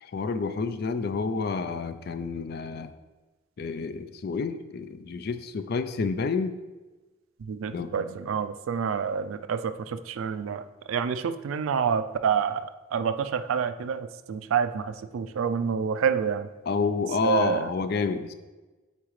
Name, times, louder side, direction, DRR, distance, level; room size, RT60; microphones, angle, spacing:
voice 1, 0.0-2.9 3.6-6.5 7.7-8.1 16.7-18.3, left 4 dB, 50° left, 11 dB, 0.4 m, -29 dB
voice 2, 7.4-16.5 17.2-17.7, right 7 dB, 80° right, 11 dB, 0.4 m, -28 dB
8.4 x 4.1 x 3.1 m, 1.2 s
head